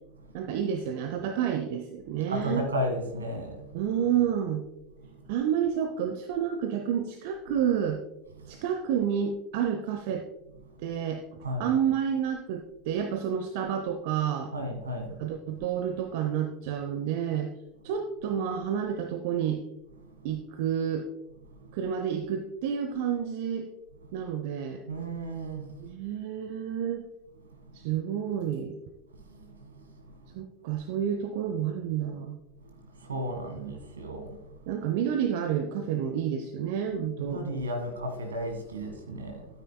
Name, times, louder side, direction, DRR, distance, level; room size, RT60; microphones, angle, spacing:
voice 1, 0.3-2.6 3.7-4.6 5.3-8.0 8.5-10.3 10.8-11.2 11.6-14.5 15.2-17.5 17.8-19.6 20.2-21.1 21.7-23.7 24.1-24.8 25.8-27.1 27.7-28.8 30.3-32.4 34.7-37.4, right 8 dB, 55° right, 7 dB, 0.7 m, -29 dB
voice 2, 2.3-3.8 5.0-5.1 8.4-8.6 11.4-11.7 14.5-15.2 21.5-21.7 24.9-25.7 29.3-30.0 33.0-34.4 37.2-39.5, equal, 75° right, 5 dB, 1.7 m, -34 dB
12.5 x 8.9 x 2.2 m, 0.95 s
figure-of-eight pair, 80°, 0 cm